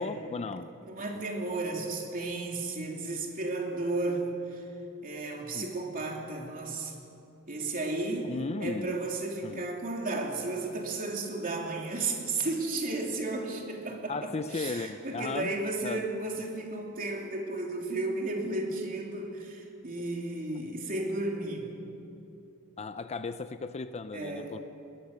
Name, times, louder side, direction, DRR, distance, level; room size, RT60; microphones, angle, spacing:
voice 1, 0.0-0.7 1.2-1.3 5.5-5.7 8.2-9.0 9.4-9.6 14.1-15.5 15.8-16.1 22.8-24.6, left 3 dB, 30° left, 11 dB, 0.5 m, -36 dB
voice 2, 0.9-4.6 5.0-6.9 7.5-8.3 8.6-21.7 24.1-24.5, right 2 dB, 40° right, 0 dB, 3.1 m, -33 dB
21.0 x 20.0 x 6.7 m, 2.8 s
head